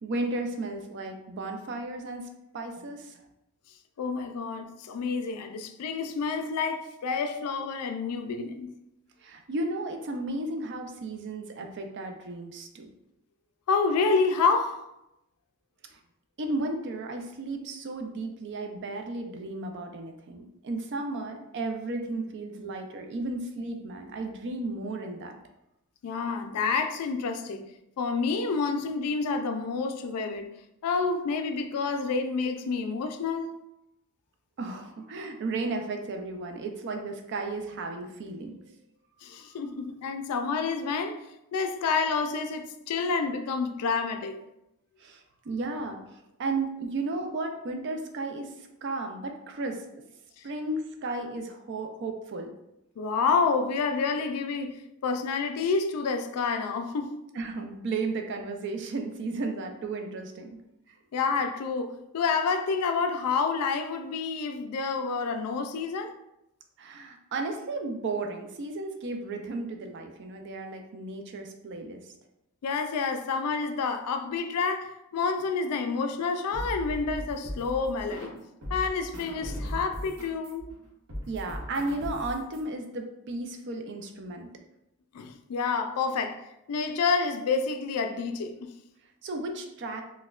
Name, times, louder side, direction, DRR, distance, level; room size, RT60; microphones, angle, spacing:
voice 1, 0.0-2.3 2.5-3.2 9.2-12.9 15.9-16.0 16.4-25.3 34.6-38.6 45.0-49.8 50.4-52.5 57.3-60.6 66.8-72.1 81.3-84.5 89.2-90.0, right 2 dB, 50° right, 0.4 m, -34 dB
voice 2, 4.0-8.7 13.7-14.8 26.0-27.6 28.0-30.5 30.8-33.5 39.2-41.2 41.5-44.4 53.0-57.2 61.1-66.1 72.6-78.3 78.7-80.7 85.1-88.7, left 4 dB, 85° left, 0.4 m, -28 dB
sound 1, 76.5-78.4 78.6-82.6, equal, 75° right, 0.9 m, -38 dB
4.1 x 2.2 x 2.3 m
head